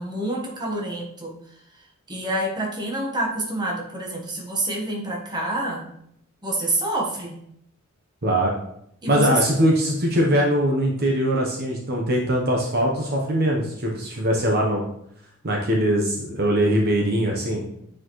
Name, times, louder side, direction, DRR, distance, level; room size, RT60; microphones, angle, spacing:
voice 1, 0.0-1.3 2.1-5.9 6.4-7.4 9.0-9.4, right 1 dB, 20° right, -1 dB, 1.3 m, -27 dB
voice 2, 8.2-8.5 9.1-14.8 15.4-17.6, right 1 dB, 50° right, 0 dB, 0.9 m, -21 dB
8.6 x 4.4 x 3.1 m, 0.73 s
head